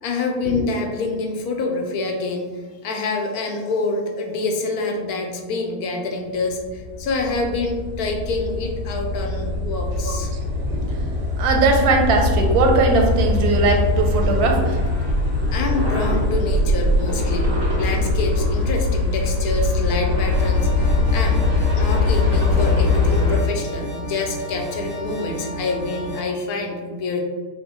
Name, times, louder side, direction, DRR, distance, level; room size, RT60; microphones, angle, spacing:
voice 1, 0.0-10.3 15.5-27.2, left 3 dB, 85° left, 2 dB, 1.1 m, -26 dB
sound 1, 6.6-23.4, left 2 dB, 60° right, 1.7 m, -21 dB
voice 2, 9.9-14.8, right 3 dB, 90° right, 2 dB, 1.2 m, -20 dB
sound 2, 20.3-26.2, right 1 dB, 45° left, 0.4 m, -33 dB
5.3 x 2.1 x 2.9 m, 1.4 s
omnidirectional pair, 1.6 m